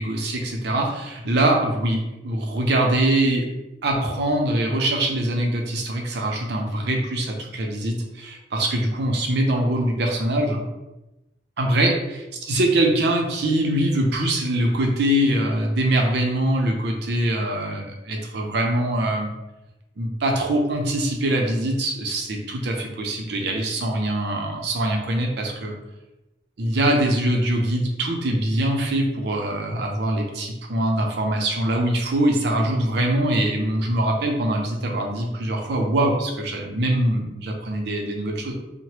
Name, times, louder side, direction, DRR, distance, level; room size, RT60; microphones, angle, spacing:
voice 1, 0.0-3.5 3.8-10.6 11.6-11.9 12.4-19.3 20.0-25.8 26.6-38.5, right 1 dB, 65° right, 1 dB, 0.5 m, -23 dB
3.1 x 2.1 x 2.8 m, 0.99 s
head